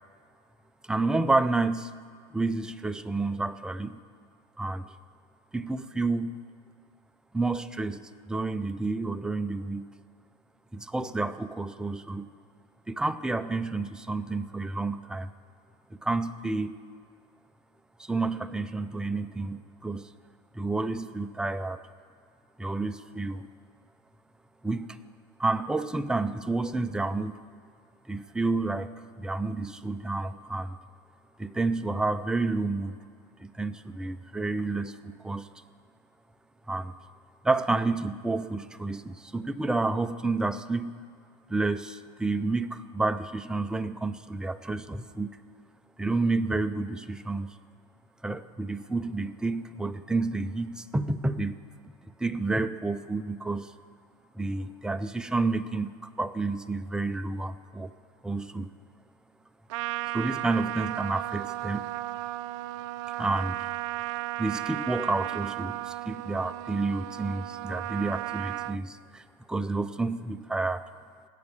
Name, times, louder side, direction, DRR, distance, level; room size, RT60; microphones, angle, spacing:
voice 1, 0.8-1.9 2.3-4.0 4.6-4.9 5.5-6.4 7.3-8.0 8.3-9.9 10.7-12.3 12.9-15.3 15.9-16.7 18.0-20.1 20.5-21.8 22.6-23.5 24.6-25.0 25.4-27.4 28.1-30.8 31.4-33.0 33.4-35.5 36.7-36.9 37.4-40.9 41.5-45.4 46.0-47.6 48.2-51.6 51.8-51.9 52.2-53.7 54.3-57.9 58.2-58.7 60.1-61.9 63.2-63.7 64.4-69.2 69.5-70.9, right 3 dB, 5° right, 10 dB, 0.4 m, -30 dB
Trumpet, 59.7-68.8, right 17 dB, 70° right, 0.4 m, -35 dB
19.0 x 7.8 x 7.1 m, 2.1 s
supercardioid pair, 130°, 17 cm